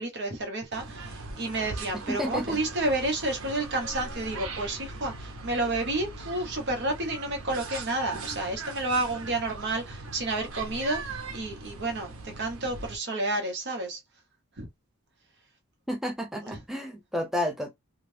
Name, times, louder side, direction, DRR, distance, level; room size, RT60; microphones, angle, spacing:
voice 1, 0.0-14.0 14.6-14.7 16.4-16.6, right 2 dB, 55° right, 1.0 m, -30 dB
sound 1, 0.7-13.0, right 3 dB, 85° right, 0.8 m, -40 dB
voice 2, 2.1-2.6 15.9-17.7, left 1 dB, ahead, 0.4 m, -31 dB
2.7 x 2.4 x 3.3 m
head